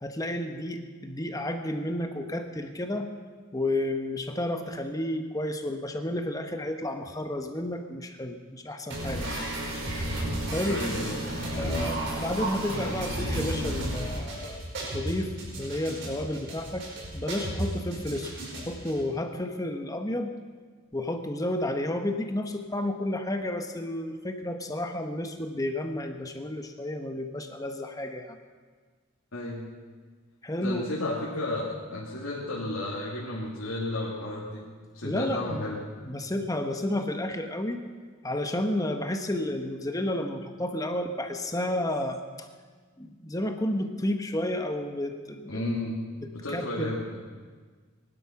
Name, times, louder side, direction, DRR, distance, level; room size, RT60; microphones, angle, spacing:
voice 1, 0.0-3.1 3.5-9.4 10.5-10.8 11.5-14.6 14.9-15.3 15.6-16.8 17.1-18.3 18.7-20.4 20.9-28.4 30.4-30.8 35.0-35.6 36.0-37.8 38.2-42.5 43.0-45.7 46.5-46.9, left 1 dB, 15° left, 6 dB, 1.0 m, -31 dB
sound 1, 8.9-18.9, right 1 dB, 55° right, 5.1 m, -33 dB
voice 2, 10.7-11.2 11.6-12.0 29.3-29.7 30.6-34.6 34.9-35.8 45.5-46.0 46.3-47.2, left 1 dB, 80° left, -5 dB, 2.7 m, -33 dB
20.5 x 12.0 x 5.9 m, 1.5 s
head